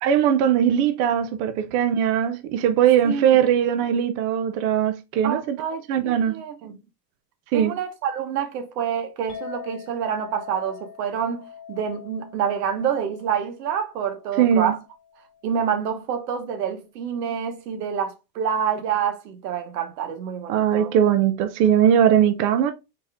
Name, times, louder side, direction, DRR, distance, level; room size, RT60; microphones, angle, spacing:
voice 1, 0.0-5.6 5.9-6.4 7.5-7.8 14.4-14.7 20.5-22.7, right 9 dB, 35° right, 0.4 m, -20 dB
voice 2, 5.2-6.8 7.5-14.8 15.4-20.9, right 8 dB, 75° right, 1.3 m, -27 dB
Chink clink, 9.3-15.6, left 8 dB, 20° left, 1.5 m, -43 dB
4.2 x 3.4 x 3.5 m
supercardioid pair, 140°, 49 cm